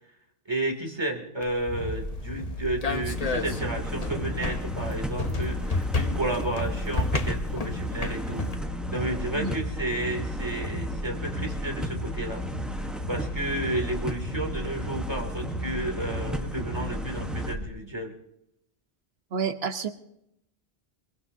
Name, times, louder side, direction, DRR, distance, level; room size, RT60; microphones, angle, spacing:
voice 1, 0.5-8.4 8.9-18.1, right 1 dB, 25° right, 1 dB, 2.8 m, -32 dB
sound 1, 1.4-8.5, left 3 dB, 40° left, 1.1 m, -32 dB
sound 2, 1.7-17.7, equal, 55° left, 7.3 m, -34 dB
sound 3, 3.0-17.5, equal, ahead, 1.1 m, -37 dB
voice 2, 19.3-19.9, right 6 dB, 70° right, 8 dB, 1.2 m, -29 dB
22.5 x 22.5 x 2.7 m, 0.78 s
omnidirectional pair, 1.1 m